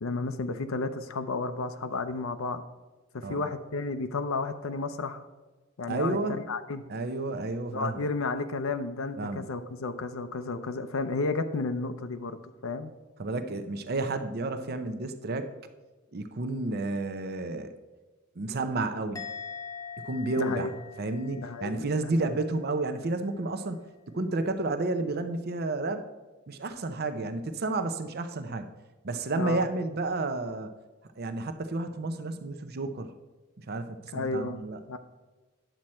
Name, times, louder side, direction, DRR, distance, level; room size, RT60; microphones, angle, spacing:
voice 1, 0.0-2.6 3.1-5.3 5.8-6.8 7.7-12.9 20.4-20.7 21.4-21.9 22.2-22.3 29.4-29.7 34.1-34.6 34.9-35.0, left 3 dB, 90° left, 8 dB, 0.6 m, -32 dB
voice 2, 5.9-6.4 6.9-8.0 9.2-9.4 13.2-15.5 16.1-17.7 18.4-19.2 20.0-20.7 21.0-23.9 24.1-26.0 26.5-28.7 29.0-30.7 31.2-33.1 33.6-34.8, right 2 dB, 50° right, 8 dB, 0.6 m, -31 dB
Musical instrument, 19.1-22.5 22.8-23.2, left 6 dB, 15° left, 0.6 m, -43 dB
10.0 x 7.6 x 4.3 m, 1.3 s
head